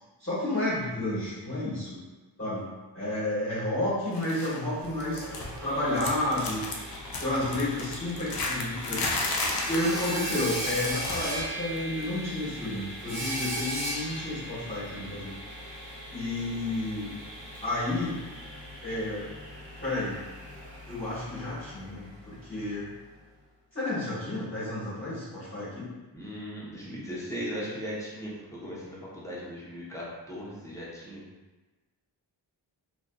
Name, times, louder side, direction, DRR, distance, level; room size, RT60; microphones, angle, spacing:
voice 1, 0.2-2.0 2.4-2.7 2.9-5.2 5.6-6.6 7.2-9.3 9.7-15.3 16.1-17.1 17.6-18.2 18.8-19.3 19.8-20.2 20.9-22.9 23.7-25.9, left 1 dB, 30° left, -13 dB, 1.4 m, -31 dB
sound 1, 4.1-4.6 4.8-5.7 5.9-11.5 11.8-12.0 13.1-13.2, left 2 dB, 55° left, 0.5 m, -34 dB
Sawing, 4.8-22.6, equal, 90° right, 0.8 m, -39 dB
voice 2, 26.1-31.2, equal, 5° left, -8 dB, 0.8 m, -38 dB
2.7 x 2.5 x 2.2 m, 1.2 s
wide cardioid pair, 70°, 44 cm